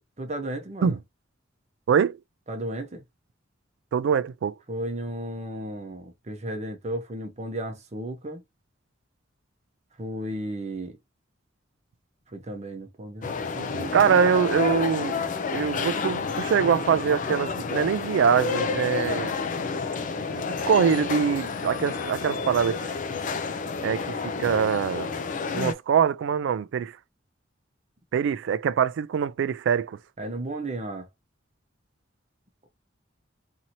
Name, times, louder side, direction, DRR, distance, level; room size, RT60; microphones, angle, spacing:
voice 1, 0.2-1.0 2.5-3.0 4.7-8.4 10.0-11.0 12.3-14.3 30.2-31.1, right 1 dB, 35° right, 0.8 m, -34 dB
voice 2, 3.9-4.5 13.9-15.2 15.5-19.3 20.3-22.9 23.8-25.1 25.5-27.0 28.1-30.0, right 7 dB, 65° right, 0.3 m, -24 dB
sound 1, 13.2-25.7, left 4 dB, 45° left, 0.4 m, -30 dB
2.8 x 2.7 x 2.6 m
head